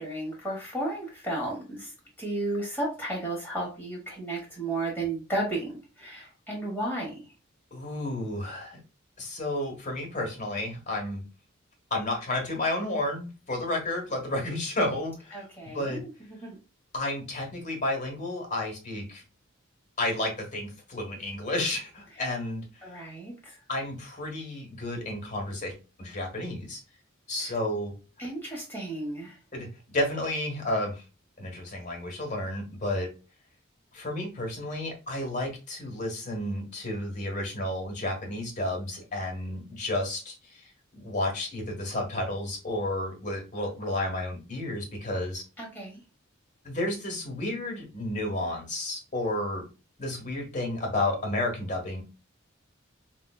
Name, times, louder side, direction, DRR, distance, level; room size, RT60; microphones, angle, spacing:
voice 1, 0.0-1.9 2.2-5.7 6.0-7.1 15.3-16.1 16.4-16.6 22.8-23.6 27.4-27.5 28.2-29.3 45.6-46.0, right 2 dB, 10° left, -3 dB, 1.3 m, -33 dB
voice 2, 7.7-8.8 9.2-11.2 11.9-15.5 15.7-16.0 16.9-19.2 20.0-22.6 23.7-25.7 26.0-26.8 27.3-27.9 29.5-29.7 29.9-31.0 31.4-33.1 33.9-40.7 41.0-45.4 46.6-49.7 50.0-52.0, left 1 dB, 35° left, 1 dB, 1.2 m, -31 dB
4.9 x 2.2 x 2.3 m, 0.31 s
head